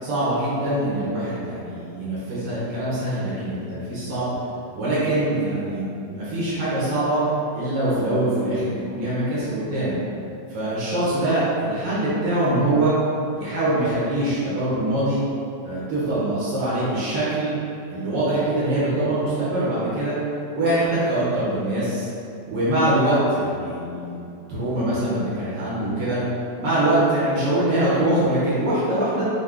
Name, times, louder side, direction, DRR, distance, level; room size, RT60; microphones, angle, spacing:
voice 1, 0.0-4.3 4.8-7.2 7.5-10.0 10.5-12.9 13.3-15.2 15.6-17.5 17.9-20.1 20.5-22.1 22.5-24.2 24.5-26.2 26.6-29.2, right 1 dB, 90° right, -10 dB, 1.9 m, -23 dB
6.3 x 2.1 x 3.7 m, 2.5 s
omnidirectional pair, 1.9 m